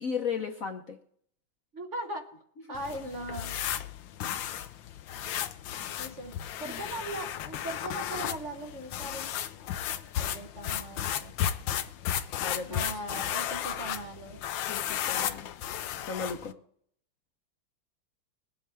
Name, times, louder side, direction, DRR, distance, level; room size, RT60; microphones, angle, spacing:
voice 1, 0.0-1.0 6.6-6.8 12.4-12.8 14.7-15.5 16.1-16.5, left 6 dB, 50° left, 4 dB, 1.2 m, -35 dB
voice 2, 1.7-2.3 2.7-3.5 6.0-9.3 10.2-11.3 12.7-14.4, right 1 dB, 45° right, 3 dB, 1.2 m, -39 dB
sound 1, 2.7-16.5, left 10 dB, 80° left, 1.4 m, -34 dB
22.5 x 7.7 x 3.4 m, 0.65 s
omnidirectional pair, 2.2 m